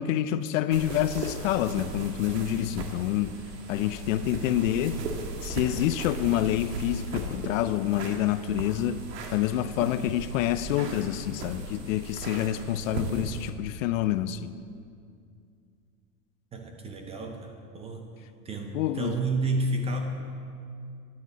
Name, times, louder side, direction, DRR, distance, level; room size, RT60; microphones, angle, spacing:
voice 1, 0.0-3.4 3.7-5.0 5.4-9.0 9.3-14.5 18.7-19.2, left 12 dB, 55° left, 0.5 m, -27 dB
sound 1, 0.7-13.5, right 3 dB, 85° right, 1.6 m, -37 dB
voice 2, 16.5-18.1 18.4-20.0, right 2 dB, 15° right, 0.4 m, -31 dB
13.0 x 9.8 x 4.1 m
supercardioid pair, 130°, 47 cm